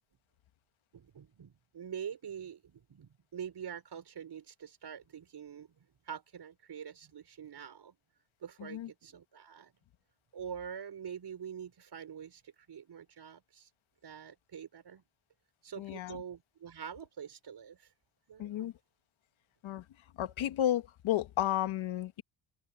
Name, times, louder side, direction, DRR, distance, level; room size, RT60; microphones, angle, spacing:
voice 1, 0.9-5.8 6.1-7.9 8.4-9.7 10.3-13.7 14.0-15.0 15.6-17.9 18.3-18.7, right 8 dB, 50° right, 5.0 m, -45 dB
voice 2, 15.8-16.2 18.4-18.7 19.6-19.8 20.2-22.2, left 12 dB, 70° left, 1.6 m, -32 dB
cardioid pair, 75°, 49 cm